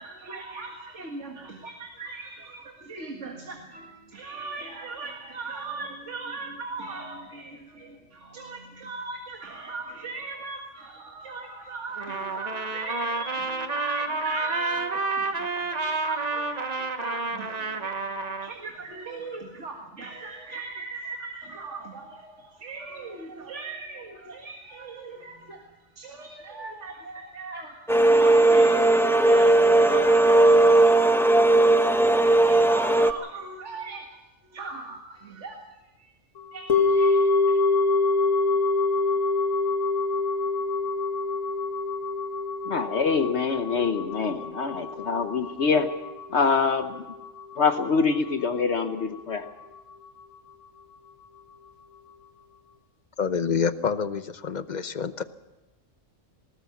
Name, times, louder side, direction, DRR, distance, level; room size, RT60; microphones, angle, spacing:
voice 1, 0.0-36.2 36.5-37.2 37.5-37.6, right 3 dB, 65° right, 2 dB, 2.1 m, -39 dB
Trumpet, 12.0-18.5, right 3 dB, 35° right, 1.2 m, -30 dB
sound 1, 27.9-33.1, right 2 dB, ahead, 0.7 m, -18 dB
sound 2, 36.7-47.0 47.2-47.3, left 3 dB, 80° left, 2.6 m, -25 dB
voice 2, 42.7-45.9 46.3-47.0 47.6-49.4, left 5 dB, 60° left, 7 dB, 1.2 m, -25 dB
voice 3, 53.2-55.2, left 6 dB, 40° left, 12 dB, 0.8 m, -27 dB
20.5 x 18.0 x 7.1 m, 1.1 s
omnidirectional pair, 1.3 m